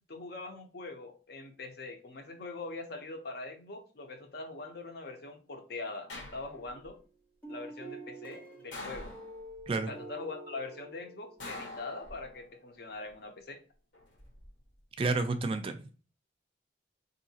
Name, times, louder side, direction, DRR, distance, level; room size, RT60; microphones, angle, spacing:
voice 1, 0.1-7.0 7.5-9.1 9.9-13.6, left 3 dB, 55° left, 5 dB, 0.7 m, -42 dB
sound 1, 6.1-6.9 8.7-9.7 11.4-12.5 13.9-14.5, left 2 dB, 70° left, 1.0 m, -45 dB
sound 2, 6.5-7.0 7.4-11.7, right 1 dB, 10° left, 0.6 m, -47 dB
voice 2, 15.0-15.8, right 3 dB, 30° right, 7 dB, 0.3 m, -30 dB
3.9 x 2.7 x 2.7 m, 0.38 s
head